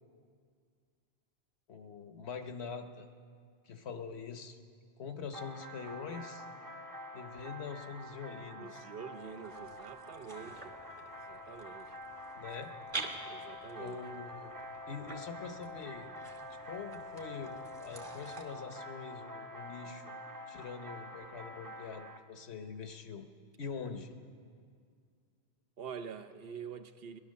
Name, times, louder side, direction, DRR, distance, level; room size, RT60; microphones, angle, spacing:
voice 1, 1.7-3.1 3.7-4.6 5.0-6.4 7.1-8.9 12.3-12.7 13.7-14.5 14.9-16.1 16.6-20.1 20.5-23.2 23.6-24.1, left 5 dB, 85° left, 7 dB, 1.3 m, -44 dB
sound 1, 5.3-22.2, left 1 dB, 20° right, 0.7 m, -47 dB
voice 2, 8.6-10.8 11.3-12.0 13.3-14.0 25.8-27.2, right 7 dB, 65° right, 9 dB, 0.9 m, -46 dB
sound 2, 9.2-18.4, right 3 dB, 50° right, 1.4 m, -48 dB
18.5 x 11.5 x 6.5 m, 2.1 s
omnidirectional pair, 1.1 m